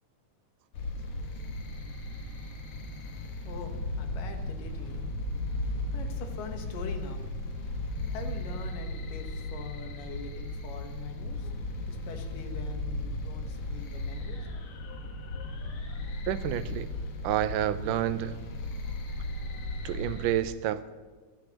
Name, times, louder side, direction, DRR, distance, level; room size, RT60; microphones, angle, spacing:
sound 1, 0.7-20.3, left 2 dB, 65° left, 2.5 m, -36 dB
sound 2, 2.3-8.2, right 1 dB, 60° right, 2.0 m, -51 dB
voice 1, 3.1-5.1 5.6-7.2 8.1-14.5 15.2-15.3, left 5 dB, 90° left, 5 dB, 2.9 m, -44 dB
voice 2, 16.3-16.9 17.2-18.4 19.8-20.9, right 12 dB, 85° right, 13 dB, 2.1 m, -29 dB
23.0 x 12.5 x 3.0 m, 1.3 s
omnidirectional pair, 3.8 m